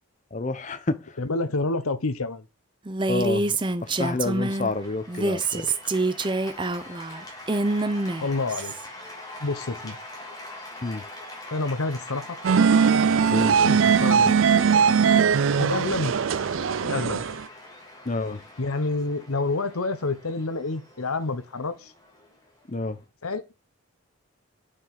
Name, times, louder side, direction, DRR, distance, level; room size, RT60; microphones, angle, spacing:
voice 1, 0.3-1.0 3.1-3.6 4.0-5.6 10.8-11.0 13.3-13.6 18.1-18.4 22.7-23.0, left 3 dB, 35° left, 0.7 m, -28 dB
voice 2, 1.2-2.4 8.2-8.7 9.4-10.0 11.5-12.4 13.6-14.4 15.6-16.1 16.8-17.3 18.6-21.9 23.2-23.4, left 3 dB, 90° left, 1.0 m, -28 dB
Female speech woman speaking, 2.9-4.7 5.1-8.8, right 2 dB, 20° right, 0.6 m, -26 dB
Cheering / Applause, 3.8-23.0, left 1 dB, 15° left, 2.9 m, -43 dB
sound 1, 12.4-17.4, right 6 dB, 65° right, 0.4 m, -20 dB
9.6 x 5.0 x 5.8 m
head